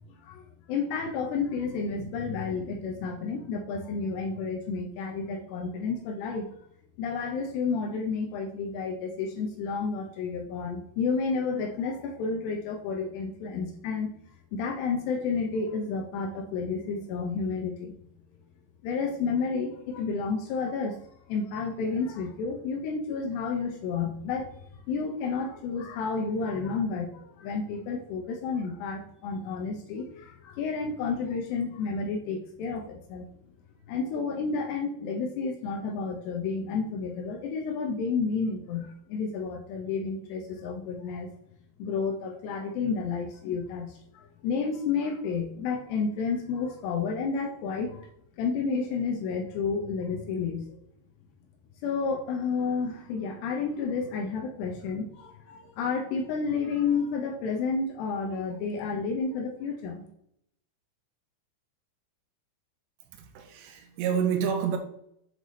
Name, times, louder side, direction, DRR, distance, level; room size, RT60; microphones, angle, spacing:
voice 1, 0.1-0.4 0.7-6.5 7.0-14.1 14.5-18.0 18.8-21.0 21.3-24.6 24.9-33.3 33.9-41.3 41.8-44.0 44.4-48.1 48.4-50.8 51.8-60.0, left 5 dB, 80° left, 2.6 m, -31 dB
voice 2, 63.1-64.8, right 7 dB, 80° right, 2.6 m, -28 dB
7.7 x 3.3 x 4.1 m
omnidirectional pair, 5.5 m